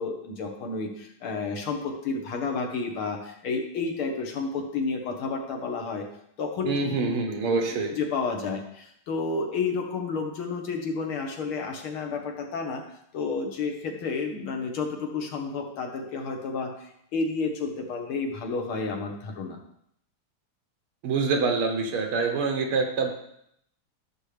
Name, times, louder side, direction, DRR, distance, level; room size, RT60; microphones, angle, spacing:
voice 1, 0.0-6.1 6.4-7.1 7.9-12.8 13.1-19.6, left 4 dB, 75° left, 2 dB, 2.2 m, -31 dB
voice 2, 6.7-7.9 21.0-23.1, right 4 dB, 80° right, 4 dB, 2.0 m, -25 dB
13.5 x 6.4 x 3.4 m, 0.73 s
omnidirectional pair, 2.4 m